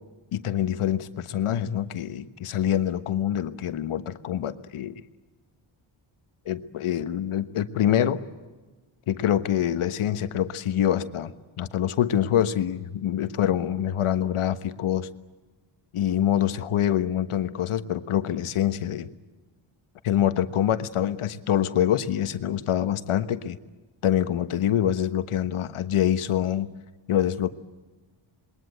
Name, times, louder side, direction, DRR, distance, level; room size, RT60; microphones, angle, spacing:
voice 1, 0.3-5.0 6.4-8.2 9.1-15.1 15.9-19.1 20.0-23.6 24.0-26.7 27.1-27.5, left 10 dB, 90° left, 11 dB, 1.3 m, -25 dB
27.0 x 22.0 x 7.9 m, 1.3 s
wide cardioid pair, 160°, 49 cm